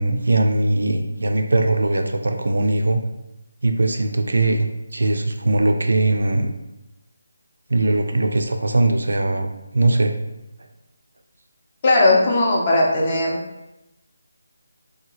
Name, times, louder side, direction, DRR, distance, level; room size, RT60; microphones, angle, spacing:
voice 1, 0.0-3.0 3.6-6.5 7.7-10.1, right 2 dB, 80° right, 5 dB, 0.4 m, -20 dB
voice 2, 11.8-13.4, left 2 dB, 30° left, -3 dB, 0.6 m, -17 dB
2.8 x 2.3 x 2.9 m, 0.93 s
figure-of-eight pair, 170°, 0 cm